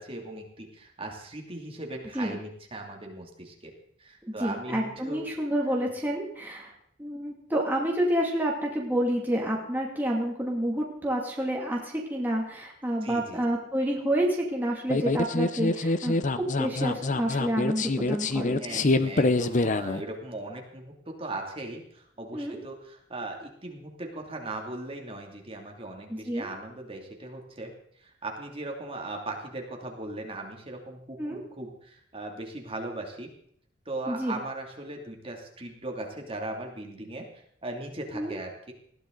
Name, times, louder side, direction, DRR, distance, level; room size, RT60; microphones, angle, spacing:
voice 1, 0.0-3.7 4.0-5.2 13.0-13.4 18.6-20.9 21.2-33.3 33.8-38.7, right 2 dB, 30° right, 1 dB, 2.7 m, -38 dB
voice 2, 4.2-6.7 7.0-18.6 22.3-22.6 26.1-26.5 31.2-31.4 34.1-34.4 38.1-38.3, right 1 dB, 10° right, -2 dB, 2.5 m, -29 dB
sound 1, 14.9-20.0, left 2 dB, 40° left, 0.7 m, -26 dB
20.5 x 15.0 x 4.0 m, 0.65 s
head